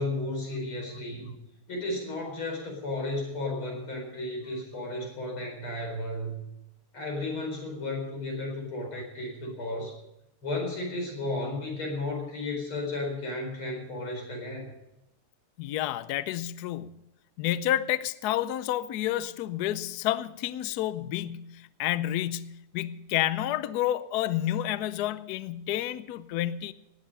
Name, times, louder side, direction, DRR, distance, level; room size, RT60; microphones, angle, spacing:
voice 1, 0.0-1.3 1.7-6.4 6.9-9.9 10.4-14.7, left 2 dB, 70° left, 5.3 m, -33 dB
voice 2, 15.6-17.0 17.4-26.7, left 13 dB, 85° left, 0.8 m, -30 dB
19.5 x 9.1 x 5.5 m
omnidirectional pair, 2.4 m